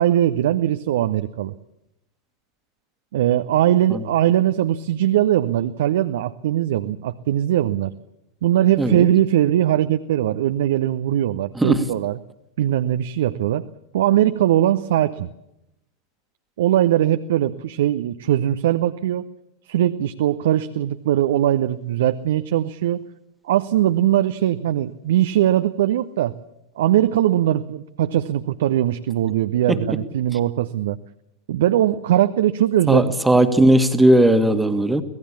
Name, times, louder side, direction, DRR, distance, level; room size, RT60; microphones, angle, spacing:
voice 1, 0.0-1.5 3.1-7.9 8.4-12.2 12.6-13.7 13.9-15.3 16.6-19.3 19.7-23.0 23.4-26.3 26.8-31.0 31.5-33.1, right 12 dB, 55° right, 11 dB, 0.8 m, -20 dB
voice 2, 32.9-35.0, right 1 dB, 5° right, 9 dB, 1.8 m, -17 dB
25.5 x 18.0 x 7.2 m, 0.87 s
figure-of-eight pair, 90°, 0 cm